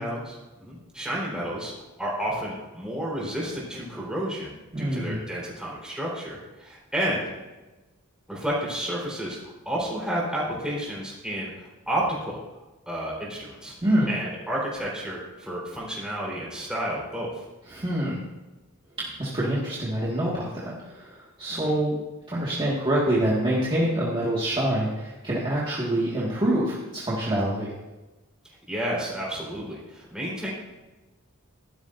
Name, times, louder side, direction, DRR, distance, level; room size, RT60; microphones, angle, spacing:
voice 1, 0.0-1.7 2.0-7.3 8.3-12.4 12.9-13.7 14.1-17.4 21.5-21.7 28.7-30.5, right 1 dB, 5° right, -6 dB, 4.0 m, -31 dB
voice 2, 4.7-5.2 13.8-14.1 17.7-18.2 19.2-22.0 22.3-27.7, right 1 dB, 25° right, -7 dB, 1.9 m, -26 dB
14.5 x 12.0 x 2.6 m, 1.1 s
head